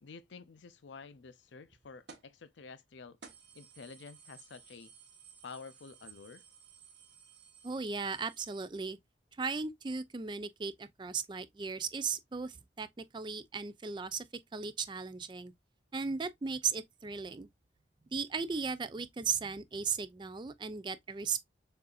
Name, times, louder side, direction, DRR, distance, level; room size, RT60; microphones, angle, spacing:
voice 1, 0.0-3.2 3.5-4.9 5.4-6.4, left 4 dB, 85° left, 0.5 m, -50 dB
sound 1, 2.1-2.4 2.8-2.9 3.2-8.7, right 6 dB, 70° right, 1.1 m, -56 dB
voice 2, 7.6-9.0 9.3-14.3 14.5-15.5 15.9-17.5 18.1-21.5, right 5 dB, 25° right, 0.3 m, -36 dB
6.5 x 2.6 x 2.3 m
head